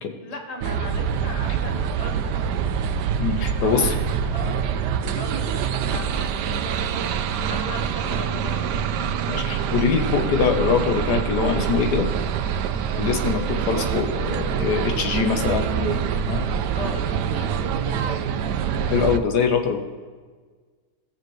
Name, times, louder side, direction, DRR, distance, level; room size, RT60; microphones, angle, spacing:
voice 1, 0.2-2.8 3.5-9.1 15.6-15.8 16.7-18.6, left 2 dB, 25° left, 1 dB, 1.6 m, -38 dB
sound 1, 0.6-19.2, right 7 dB, 85° right, 1.2 m, -25 dB
voice 2, 3.2-3.9 9.3-12.1 12.9-16.5 18.9-19.8, left 6 dB, 80° left, 4 dB, 1.5 m, -23 dB
18.0 x 7.0 x 3.2 m, 1.5 s
omnidirectional pair, 1.7 m